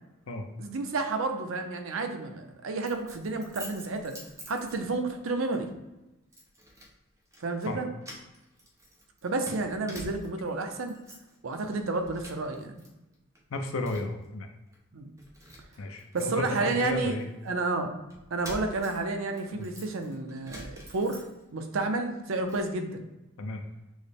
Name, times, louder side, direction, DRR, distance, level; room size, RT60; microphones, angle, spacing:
voice 1, 0.6-4.2 4.5-5.7 7.4-7.9 9.2-10.9 11.4-12.8 14.9-15.1 16.1-17.1 17.4-17.9 18.3-21.2 21.5-23.0, right 3 dB, 65° right, 5 dB, 0.5 m, -31 dB
Keys jangling, 2.9-5.2 5.5-5.7 6.3-6.9 7.3-7.7 8.0-10.5 10.8-11.4 11.7-12.9 13.1-14.3 14.7-14.8 15.2-17.5 18.1-21.7 22.0-22.7, right 1 dB, 15° right, 0.6 m, -47 dB
voice 2, 13.5-14.5 15.8-17.3 19.5-19.7 23.4-23.6, left 2 dB, 75° left, 5 dB, 0.5 m, -33 dB
6.2 x 2.1 x 3.4 m, 0.97 s
head